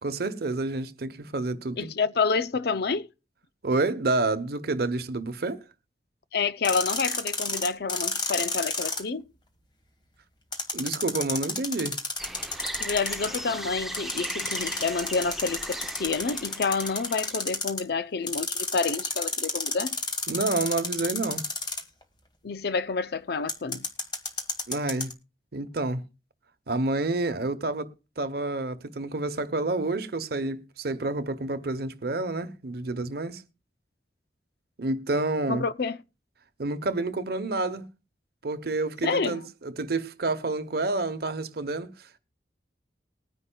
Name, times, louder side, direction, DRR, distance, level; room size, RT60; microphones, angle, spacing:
voice 1, 0.0-1.9 3.6-5.6 10.7-12.0 20.3-21.4 24.7-25.1 25.5-26.0 26.7-27.9 28.2-33.4 34.8-35.6 36.6-37.9 38.4-42.1, right 2 dB, 60° right, 0.9 m, -29 dB
voice 2, 1.8-3.1 6.3-9.3 12.8-20.0 22.4-23.8 35.5-36.0 39.0-39.4, left 4 dB, 60° left, 0.5 m, -28 dB
sound 1, 6.6-9.0 10.5-13.4 13.9-17.8 18.3-22.0 23.5-25.1, left 3 dB, 25° left, 1.5 m, -31 dB
sound 2, 12.2-17.5, right 1 dB, ahead, 0.7 m, -37 dB
20.5 x 9.9 x 2.3 m
head